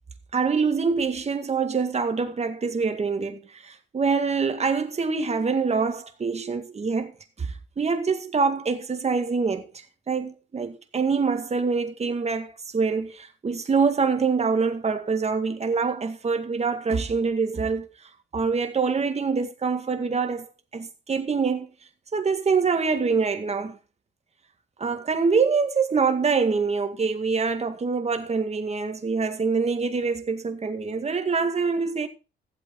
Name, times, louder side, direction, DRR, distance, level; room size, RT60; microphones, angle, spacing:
voice 1, 0.3-9.7 10.1-21.7 22.1-23.8 24.8-32.1, right 5 dB, 35° right, 2.0 m, -25 dB
15.0 x 8.2 x 3.8 m
cardioid pair, 90°, 20 cm